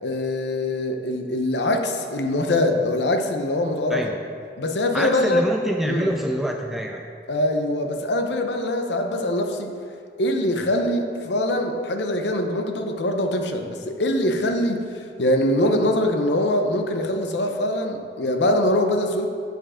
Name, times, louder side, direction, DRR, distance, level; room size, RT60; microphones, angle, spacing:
voice 1, 0.0-4.1 4.6-5.4 5.8-6.1 7.3-9.7 10.2-14.8 15.2-19.3, left 1 dB, 80° left, 5 dB, 0.8 m, -23 dB
voice 2, 3.9-4.2 4.9-7.1, equal, ahead, 1 dB, 0.3 m, -26 dB
8.6 x 5.3 x 5.0 m, 2.3 s
head